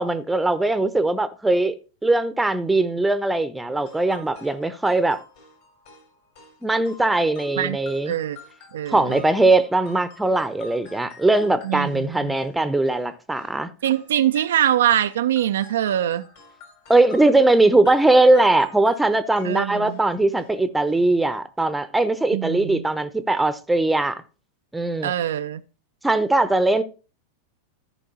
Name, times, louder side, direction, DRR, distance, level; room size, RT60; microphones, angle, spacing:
voice 1, 0.0-1.8 2.0-5.2 6.6-8.1 8.9-13.7 16.9-24.2 24.7-25.1 26.0-26.8, right 2 dB, 5° right, 0.8 m, -20 dB
sound 1, 3.7-13.6 13.8-20.6 20.9-21.1 21.4-21.5, left 3 dB, 50° left, 3.4 m, -48 dB
voice 2, 8.1-8.4 8.7-9.2 11.6-12.4 13.8-16.3 19.4-20.0 22.3-22.8 25.0-25.6, right 11 dB, 60° right, 0.4 m, -23 dB
13.5 x 5.3 x 4.0 m
figure-of-eight pair, 90°, 0 cm